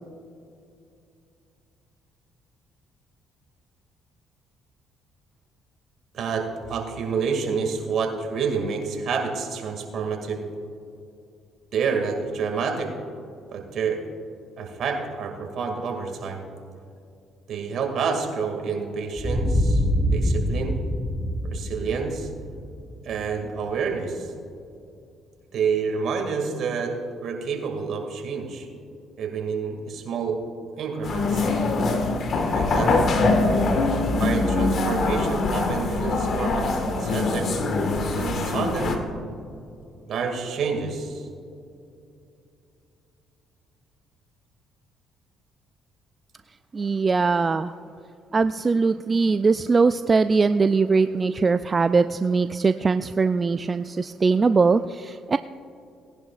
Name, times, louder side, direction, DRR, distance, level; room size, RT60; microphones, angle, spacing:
voice 1, 6.1-10.4 11.7-12.9 13.5-14.0 14.6-16.4 17.5-19.8 20.1-20.8 21.5-22.3 23.0-24.3 25.5-26.9 27.2-28.7 29.2-30.4 30.8-31.5 32.5-32.9 34.2-36.7 37.0-37.5 38.1-39.0 40.1-41.3, right 5 dB, 65° right, 3 dB, 2.1 m, -28 dB
sound 1, 19.2-23.8, equal, 15° left, 1.5 m, -25 dB
sound 2, 31.0-39.0, left 3 dB, 55° left, 1.5 m, -23 dB
voice 2, 46.7-47.7 48.3-55.4, right 4 dB, 35° right, 11 dB, 0.3 m, -21 dB
18.5 x 10.5 x 2.4 m, 2.5 s
supercardioid pair, 70°, 0 cm